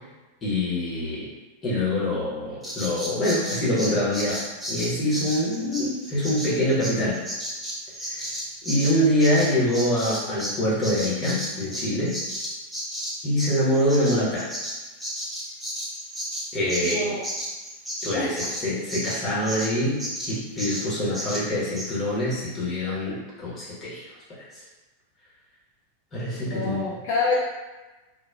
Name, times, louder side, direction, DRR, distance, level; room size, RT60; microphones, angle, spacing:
voice 1, 0.4-1.3 1.6-7.2 8.1-8.3 8.6-12.2 13.2-14.5 16.5-17.2 18.0-24.1 24.4-24.5 26.1-26.8, left 1 dB, 20° left, -7 dB, 1.1 m, -25 dB
Bird vocalization bird call bird song, 2.6-10.6 10.8-19.7 20.0-20.3 20.6-20.9 21.1-21.4 21.8-21.9, equal, 5° right, 0.6 m, -33 dB
voice 2, 16.8-17.2 18.1-18.3 26.4-27.4, left 4 dB, 50° left, -7 dB, 0.5 m, -27 dB
3.0 x 2.1 x 2.3 m, 1.1 s
figure-of-eight pair, 90°, 0 cm